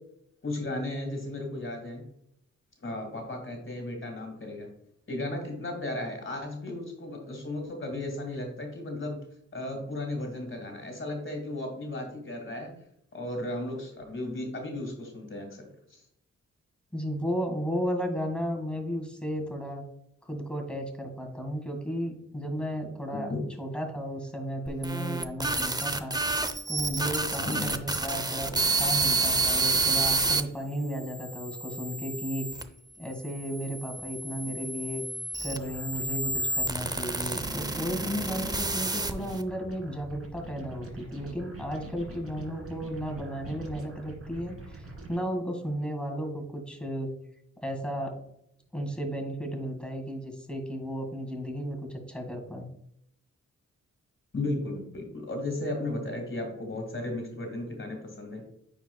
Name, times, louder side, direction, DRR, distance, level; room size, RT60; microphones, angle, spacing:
voice 1, 0.4-2.0 2.8-4.7 5.1-9.2 9.5-12.7 13.1-16.0 23.3-23.4 27.5-27.7 54.3-58.4, left 2 dB, 40° left, 2 dB, 2.1 m, -35 dB
voice 2, 16.9-19.8 20.2-23.3 23.6-26.2 26.7-32.7 33.0-35.0 35.4-47.1 47.6-48.2 48.7-52.7, equal, 5° left, 2 dB, 2.0 m, -34 dB
sound 1, 24.7-30.4 31.1-32.6 33.4-39.4, right 3 dB, 15° right, 0.6 m, -29 dB
sound 2, 35.6-45.2, right 2 dB, 50° right, 2.3 m, -43 dB
9.0 x 4.8 x 2.3 m, 0.73 s
cardioid pair, 60°, 29 cm